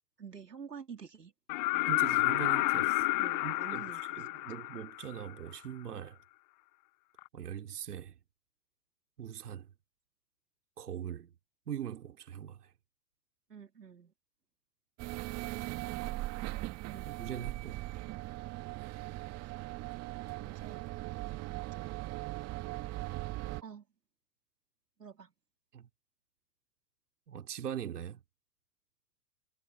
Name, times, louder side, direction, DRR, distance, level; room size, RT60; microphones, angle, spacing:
voice 1, 0.2-1.3 3.2-4.6 13.5-14.1 16.9-17.2 20.4-20.9 23.6-23.9 25.0-25.3, right 6 dB, 90° right, 3.5 m, -49 dB
sound 1, 1.5-5.3 7.2-7.3, left 23 dB, 30° left, 0.5 m, -30 dB
voice 2, 1.9-3.1 3.4-3.8 4.2-6.2 7.3-8.1 9.2-9.7 10.8-11.3 11.7-12.7 15.5-15.8 17.1-17.8 25.7-25.9 27.3-28.2, right 9 dB, 75° right, 2.9 m, -41 dB
sound 2, 15.0-23.6, right 18 dB, 30° right, 1.8 m, -39 dB
hypercardioid pair, 105°, 47 cm